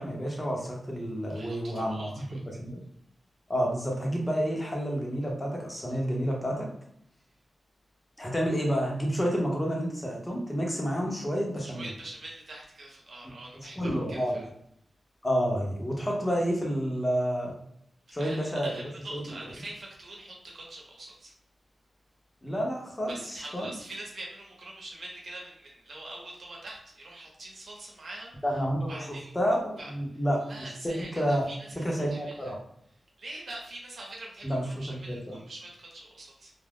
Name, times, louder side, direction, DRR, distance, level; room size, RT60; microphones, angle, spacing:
voice 1, 0.0-2.1 2.6-2.8 3.5-6.7 8.2-11.9 13.8-14.4 15.2-17.5 18.1-18.8 19.1-19.2 22.4-23.7 28.4-31.4 31.8-32.6 34.4-35.4, equal, 20° left, -2 dB, 0.9 m, -29 dB
voice 2, 1.3-2.4 11.6-14.4 18.2-21.3 23.1-28.3 28.9-29.3 29.8-30.2 30.5-31.7 32.1-32.5 33.2-36.5, right 2 dB, 60° right, -2 dB, 0.9 m, -44 dB
2.4 x 2.2 x 3.5 m, 0.71 s
wide cardioid pair, 95°, 0 cm